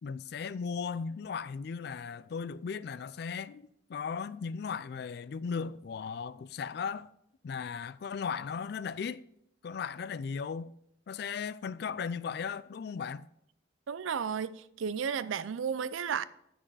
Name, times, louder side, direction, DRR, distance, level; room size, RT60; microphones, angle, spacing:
voice 1, 0.0-7.1 7.4-9.2 9.6-10.7 11.1-13.3, left 6 dB, 55° left, 0.3 m, -37 dB
voice 2, 13.9-16.2, right 7 dB, 80° right, 0.4 m, -33 dB
10.0 x 6.2 x 4.7 m
head